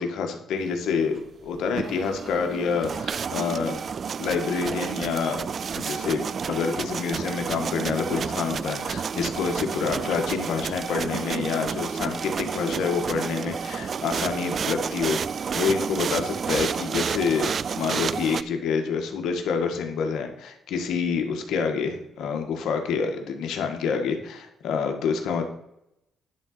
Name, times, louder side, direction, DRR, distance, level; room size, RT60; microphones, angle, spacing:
voice 1, 0.0-3.8 4.2-15.2 15.5-25.4, left 5 dB, 75° left, 4 dB, 1.6 m, -27 dB
sound 1, 1.6-18.4, right 6 dB, 50° right, 0.3 m, -30 dB
10.5 x 3.9 x 6.6 m, 0.80 s
cardioid pair, 90°, 0 cm